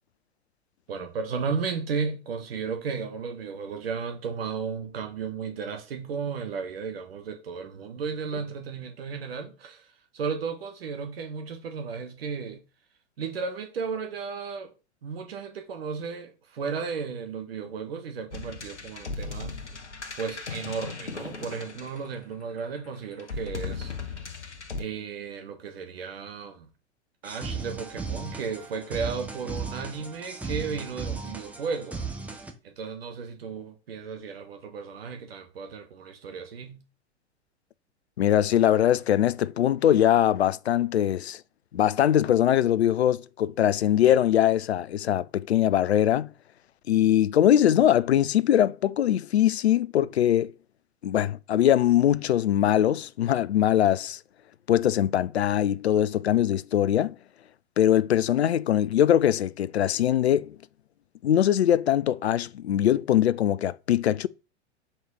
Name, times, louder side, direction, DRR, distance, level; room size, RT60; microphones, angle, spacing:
voice 1, 0.9-12.6 13.2-14.7 15.0-19.6 20.2-23.9 24.8-26.7 27.2-32.0 32.6-36.8, right 5 dB, 60° right, 1.3 m, -34 dB
sound 1, 18.3-22.4 23.2-24.8, left 4 dB, 85° left, 0.9 m, -37 dB
sound 2, 27.2-32.5, right 4 dB, 5° right, 0.6 m, -36 dB
voice 2, 38.2-41.4 41.7-46.3 46.9-50.5 51.0-54.2 54.7-57.2 57.8-60.6 61.2-64.3, left 11 dB, 70° left, 0.5 m, -22 dB
4.4 x 4.2 x 5.2 m
figure-of-eight pair, 100°, 34 cm